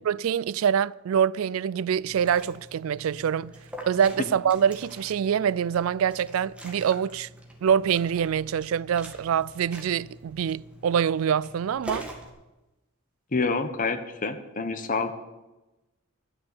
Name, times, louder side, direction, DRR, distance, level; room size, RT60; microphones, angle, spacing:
voice 1, 0.0-3.5 3.9-7.3 7.6-12.1, right 8 dB, 80° right, 0.3 m, -25 dB
Liquid, 2.0-12.3, right 1 dB, 5° right, 1.9 m, -44 dB
voice 2, 13.3-15.1, left 4 dB, 40° left, 1.0 m, -27 dB
11.5 x 6.7 x 9.6 m
head